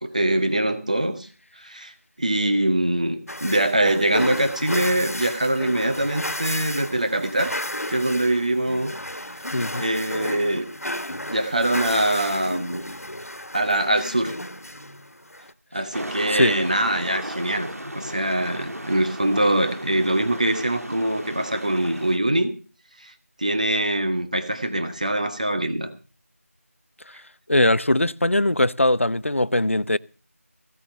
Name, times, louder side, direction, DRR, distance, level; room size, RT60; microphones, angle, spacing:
voice 1, 0.0-1.3 1.6-1.9 2.2-7.5 7.9-8.9 9.8-10.7 11.3-12.8 13.5-14.3 15.7-17.7 17.9-22.5 23.0-23.1 23.4-25.9, right 1 dB, 30° right, 1.6 m, -23 dB
sound 1, 3.3-15.5, left 1 dB, 75° left, 1.7 m, -33 dB
voice 2, 9.5-9.8 16.3-16.5 27.1-27.2 27.5-30.0, left 1 dB, 55° left, 0.7 m, -20 dB
sound 2, 15.9-22.2, equal, 75° right, 2.8 m, -35 dB
16.0 x 8.2 x 7.6 m
figure-of-eight pair, 175°, 8 cm